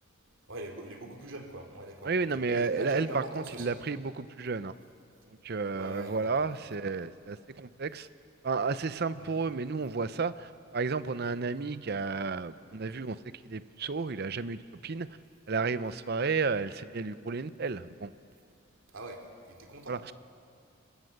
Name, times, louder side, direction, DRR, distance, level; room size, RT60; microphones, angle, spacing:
voice 1, 0.5-3.8 5.7-6.5 9.2-9.4 11.2-11.5 18.9-19.2 19.5-20.0, right 1 dB, 75° right, 3 dB, 2.8 m, -42 dB
voice 2, 2.0-4.7 5.4-8.1 8.4-13.2 13.4-15.1 15.5-18.1 19.9-20.1, right 4 dB, 50° right, 14 dB, 0.6 m, -32 dB
30.0 x 17.5 x 6.6 m, 2.4 s
head